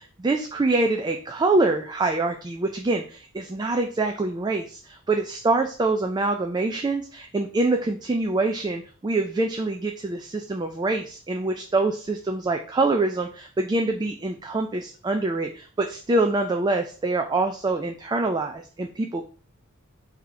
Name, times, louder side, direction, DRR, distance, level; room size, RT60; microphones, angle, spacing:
voice 1, 0.0-19.3, right 2 dB, 20° right, 4 dB, 0.3 m, -25 dB
3.9 x 2.8 x 4.7 m, 0.40 s
head